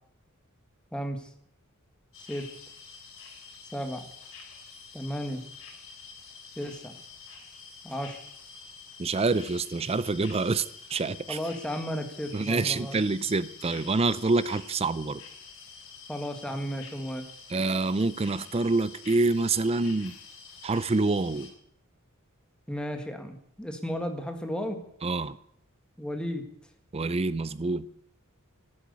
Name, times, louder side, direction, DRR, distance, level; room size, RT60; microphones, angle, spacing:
voice 1, 0.9-1.3 2.3-2.5 3.7-4.1 4.9-5.4 6.6-7.0 7.8-8.2 11.3-13.0 16.1-17.3 22.7-24.8 26.0-26.5, equal, 5° left, 5 dB, 1.7 m, -34 dB
sound 1, 2.1-21.5, left 5 dB, 65° left, 3.5 m, -47 dB
voice 2, 9.0-11.4 12.3-15.2 17.5-20.1 20.6-21.5 25.0-25.4 26.9-27.8, right 3 dB, 30° right, 16 dB, 0.5 m, -27 dB
12.0 x 10.5 x 8.3 m, 0.68 s
head